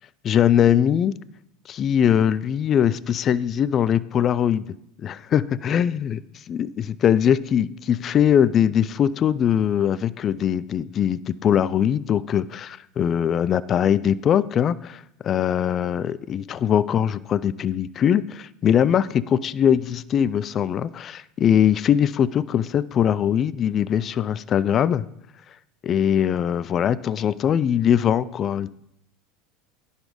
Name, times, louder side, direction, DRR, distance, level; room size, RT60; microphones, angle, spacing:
voice 1, 0.2-1.1 1.7-4.7 5.0-6.2 6.5-25.0 25.8-28.7, left 9 dB, 40° left, 18 dB, 0.3 m, -21 dB
10.5 x 4.1 x 5.1 m, 0.76 s
hypercardioid pair, 95°, 0 cm